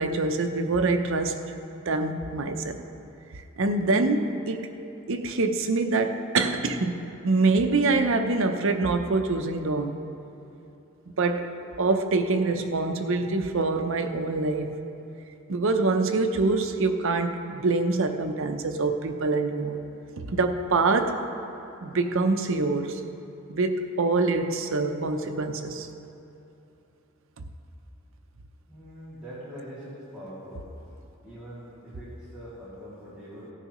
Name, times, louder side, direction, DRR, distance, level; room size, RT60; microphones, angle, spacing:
voice 1, 0.0-1.4 1.9-2.8 3.6-4.7 5.1-10.0 11.2-11.5 11.8-14.7 15.5-19.8 20.2-21.2 21.8-23.0 23.5-25.9, right 3 dB, 65° right, 6 dB, 0.7 m, -25 dB
voice 2, 28.7-30.6 31.2-33.5, equal, 5° right, -12 dB, 2.5 m, -43 dB
17.5 x 10.0 x 3.1 m, 2.9 s
head